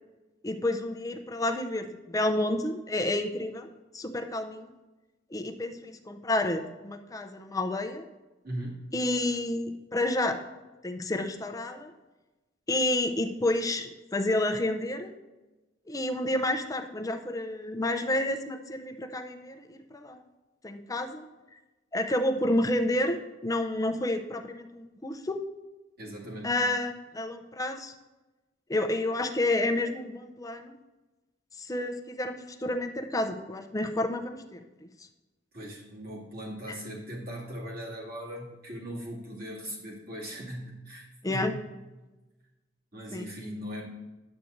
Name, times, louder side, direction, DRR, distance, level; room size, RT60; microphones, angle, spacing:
voice 1, 0.4-3.7 3.9-4.7 5.3-8.0 8.9-10.4 10.8-11.9 12.7-15.1 15.9-20.2 20.6-21.2 21.9-25.4 26.4-27.9 28.7-30.8 31.6-34.9 36.7-36.8 41.2-41.5 43.1-43.3, left 1 dB, 20° left, 6 dB, 0.5 m, -30 dB
voice 2, 8.4-8.9 26.0-26.6 35.5-41.6 42.9-43.8, equal, 55° right, -4 dB, 2.2 m, -39 dB
10.5 x 8.2 x 2.6 m, 1.1 s
head